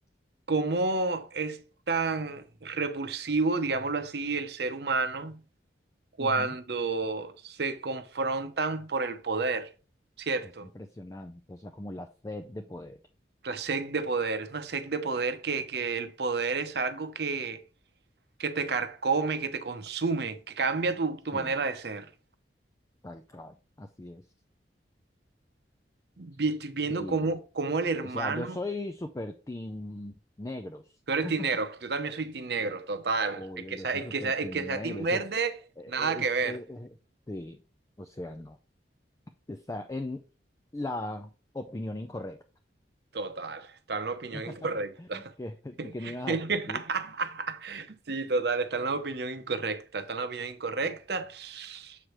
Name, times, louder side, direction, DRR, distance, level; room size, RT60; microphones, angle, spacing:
voice 1, 0.5-5.4 6.2-9.7 10.2-10.7 13.4-17.6 18.4-22.1 26.2-28.6 31.1-35.5 35.9-36.6 43.1-45.3 45.8-52.0, right 4 dB, 60° right, 0.7 m, -30 dB
voice 2, 6.2-6.5 10.4-13.0 21.3-21.6 23.0-24.2 27.0-27.4 27.9-31.3 32.6-32.8 33.3-35.2 35.8-36.9 37.3-37.6 38.0-38.6 39.5-40.2 40.7-42.4 44.3-44.6 45.0-46.8, left 1 dB, 20° left, 0.4 m, -39 dB
7.4 x 4.9 x 3.1 m
head